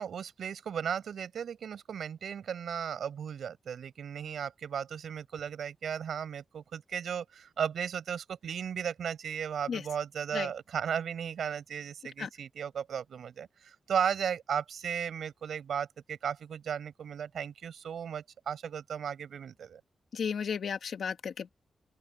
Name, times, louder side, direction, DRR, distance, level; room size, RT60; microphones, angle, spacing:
voice 1, 0.0-19.8, right 8 dB, 70° right, 5.5 m, -35 dB
voice 2, 20.1-21.5, left 6 dB, 60° left, 1.6 m, -34 dB
open air
wide cardioid pair, 175°, 0 cm